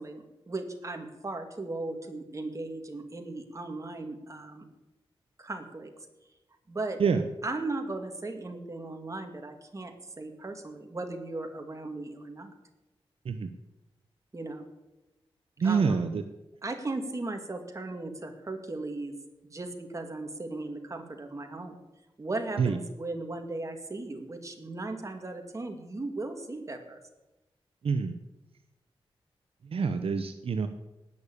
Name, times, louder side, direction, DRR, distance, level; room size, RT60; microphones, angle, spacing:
voice 1, 0.0-4.7 5.4-5.9 6.7-7.0 7.4-12.5 14.3-14.7 15.6-16.0 16.6-19.1 19.4-21.8 22.2-27.0, right 2 dB, 30° right, 4 dB, 2.3 m, -37 dB
voice 2, 15.6-16.2 22.6-22.8 27.8-28.2 29.6-30.7, right 5 dB, 70° right, 9 dB, 0.9 m, -26 dB
18.5 x 6.8 x 8.5 m, 1.0 s
wide cardioid pair, 100°, 10 cm